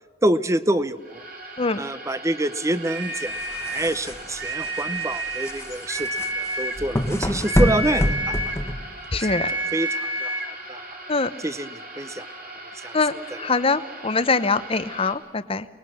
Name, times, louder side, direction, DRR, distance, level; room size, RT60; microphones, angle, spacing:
voice 1, 0.2-1.2 1.8-8.4 9.1-9.3 9.7-10.3 10.7-10.8 11.4-12.3 12.8-13.0 13.3-13.6, right 1 dB, 15° right, 14 dB, 0.8 m, -26 dB
sound 1, 1.0-15.1, right 1 dB, 50° right, 3.8 m, -40 dB
sound 2, 2.8-3.9 4.3-5.6 5.9-6.8 7.4-8.7 9.2-10.6, right 1 dB, 90° right, 2.5 m, -29 dB
sound 3, 3.3-9.2, equal, 15° left, 1.2 m, -26 dB
voice 2, 9.1-9.5 11.1-11.3 12.9-15.7, left 4 dB, 30° left, 13 dB, 0.9 m, -23 dB
29.5 x 20.0 x 6.5 m, 1.3 s
head